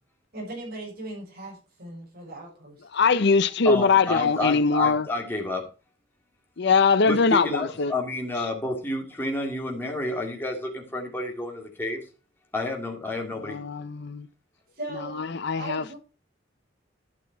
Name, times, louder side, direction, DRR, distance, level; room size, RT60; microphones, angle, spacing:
voice 1, 0.3-2.8 14.7-16.0, right 1 dB, 55° right, 6.4 m, -38 dB
voice 2, 2.9-5.1 6.6-7.9 13.4-14.3 14.9-15.8, left 4 dB, 65° left, 0.7 m, -22 dB
voice 3, 3.6-5.7 7.1-12.0 12.5-13.6, left 2 dB, 10° left, 2.2 m, -30 dB
12.0 x 6.3 x 4.6 m
head